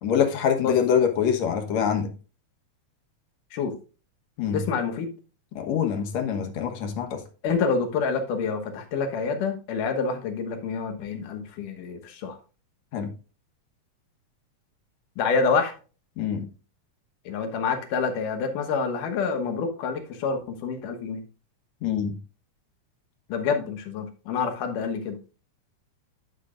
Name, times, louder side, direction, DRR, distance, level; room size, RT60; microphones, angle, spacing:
voice 1, 0.0-2.1 4.4-4.6 5.5-7.2 12.9-13.1 16.2-16.5 21.8-22.2, left 8 dB, 65° left, 5 dB, 2.3 m, -24 dB
voice 2, 4.5-5.1 7.4-12.4 15.2-15.7 17.3-21.2 23.3-25.2, left 5 dB, 90° left, 5 dB, 2.8 m, -27 dB
10.0 x 7.4 x 2.5 m, 0.34 s
omnidirectional pair, 3.6 m